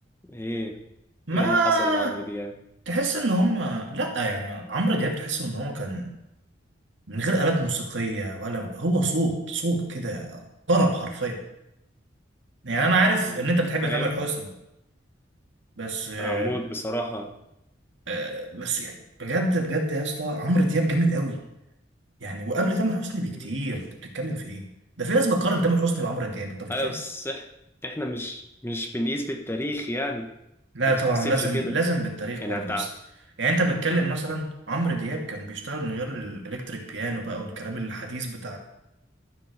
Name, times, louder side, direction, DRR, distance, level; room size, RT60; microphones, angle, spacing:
voice 1, 0.2-0.7 1.3-2.5 13.2-13.4 13.8-14.1 16.2-17.3 23.4-23.5 26.7-27.5 27.8-30.3 31.1-31.7 32.4-32.9, equal, 15° left, 3 dB, 1.3 m, -31 dB
voice 2, 1.3-2.1 2.9-6.1 7.1-11.4 12.6-14.5 15.8-16.6 18.1-18.9 19.2-21.4 22.2-23.9 24.1-24.7 25.0-27.0 30.7-32.9 33.4-38.6, right 2 dB, 70° right, 2 dB, 2.3 m, -26 dB
13.0 x 7.8 x 6.7 m, 0.87 s
head